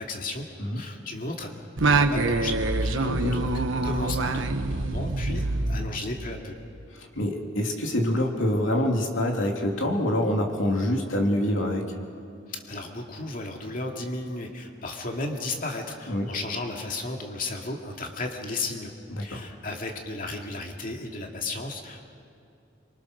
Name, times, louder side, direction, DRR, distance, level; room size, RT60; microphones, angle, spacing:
voice 1, 0.0-0.5 0.7-1.5 1.9-3.5 3.8-6.6 12.5-18.9 19.2-22.1, left 2 dB, 45° left, 1 dB, 2.3 m, -34 dB
Singing, 1.8-6.5, right 3 dB, 85° right, 1.2 m, -26 dB
voice 2, 3.0-3.4 6.9-11.9 16.1-16.3 19.1-19.5, left 1 dB, 85° left, 1 dB, 3.1 m, -26 dB
26.0 x 24.0 x 6.4 m, 2.6 s
head